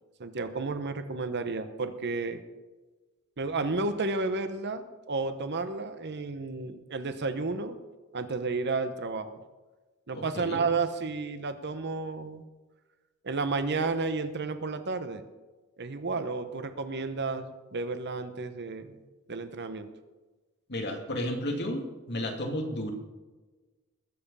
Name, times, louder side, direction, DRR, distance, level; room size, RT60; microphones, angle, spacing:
voice 1, 0.2-2.4 3.4-7.8 8.1-9.3 10.1-12.4 13.2-15.2 15.8-18.9 19.3-19.9, right 3 dB, 55° right, 10 dB, 1.0 m, -32 dB
voice 2, 10.1-10.6 20.7-22.9, left 1 dB, 50° left, 2 dB, 2.3 m, -33 dB
20.0 x 7.8 x 5.5 m, 1.2 s
head